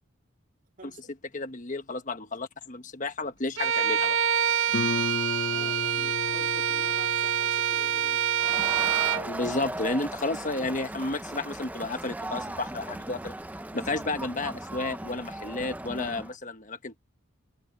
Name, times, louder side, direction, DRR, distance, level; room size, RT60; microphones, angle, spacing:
voice 1, 0.8-1.1 5.5-8.3, right 2 dB, 40° right, 2.3 m, -48 dB
voice 2, 1.3-4.2 9.3-13.3 13.7-17.0, left 2 dB, 40° left, 1.3 m, -32 dB
Bowed string instrument, 3.6-9.3, right 9 dB, 65° right, 0.8 m, -26 dB
Guitar, 4.7-10.1, left 4 dB, 60° left, 0.6 m, -35 dB
Crowd, 8.4-16.3, right 1 dB, 10° right, 0.6 m, -37 dB
head